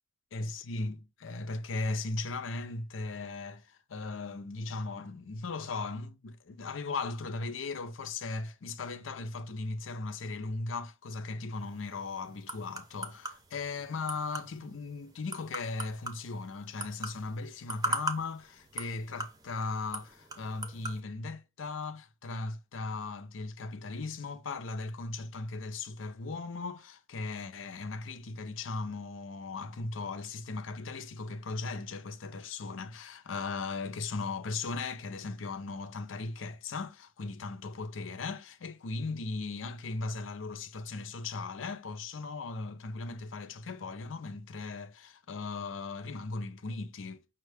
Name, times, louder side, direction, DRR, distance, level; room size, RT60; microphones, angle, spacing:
voice 1, 0.3-47.2, left 3 dB, 80° left, 0.5 m, -37 dB
sound 1, 11.6-21.0, right 2 dB, 20° right, 0.6 m, -41 dB
5.6 x 2.2 x 3.3 m
head